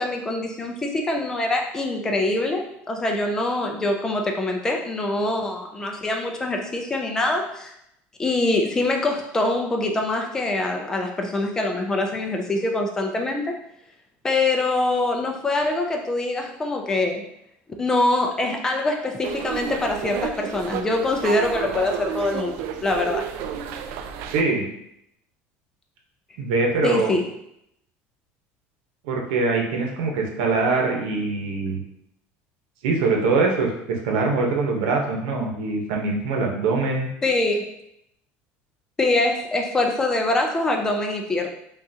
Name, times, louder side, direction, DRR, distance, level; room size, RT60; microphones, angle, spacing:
voice 1, 0.0-7.7 8.2-13.6 14.2-17.3 17.8-23.3 26.8-27.3 37.2-37.7 39.0-41.5, left 2 dB, 10° left, 2 dB, 0.4 m, -24 dB
sound 1, 19.2-24.4, right 8 dB, 55° right, 0.3 m, -31 dB
voice 2, 24.3-24.7 26.4-27.1 29.0-31.8 32.8-37.1, right 3 dB, 90° right, 1 dB, 0.9 m, -23 dB
5.5 x 2.4 x 2.8 m, 0.78 s
cardioid pair, 175°, 5 cm